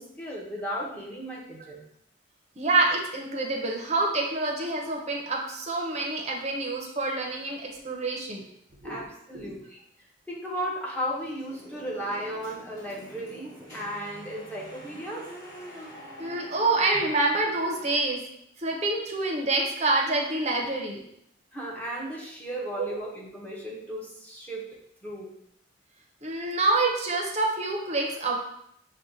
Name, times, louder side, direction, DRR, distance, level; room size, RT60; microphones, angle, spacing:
voice 1, 0.0-1.8 8.8-9.8 10.3-15.3 21.5-24.6 25.0-25.3, equal, 10° left, -4 dB, 0.7 m, -35 dB
voice 2, 2.6-8.4 8.8-9.0 9.3-9.5 16.2-18.2 18.6-21.1 22.8-22.9 26.2-28.4, right 2 dB, 35° right, 0 dB, 0.6 m, -27 dB
sound 1, 11.2-18.0, equal, 45° left, 1.5 m, -46 dB
6.2 x 2.2 x 2.7 m, 0.74 s
head